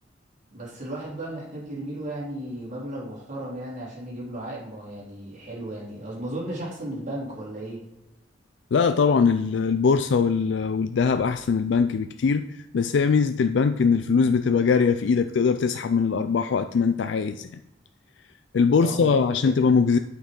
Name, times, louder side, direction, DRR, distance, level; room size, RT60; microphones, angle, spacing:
voice 1, 0.5-7.8 18.8-19.5, right 1 dB, 45° right, 3.6 m, -35 dB
voice 2, 8.7-17.6 18.5-20.0, left 5 dB, 70° left, 0.4 m, -21 dB
8.9 x 5.9 x 5.3 m
head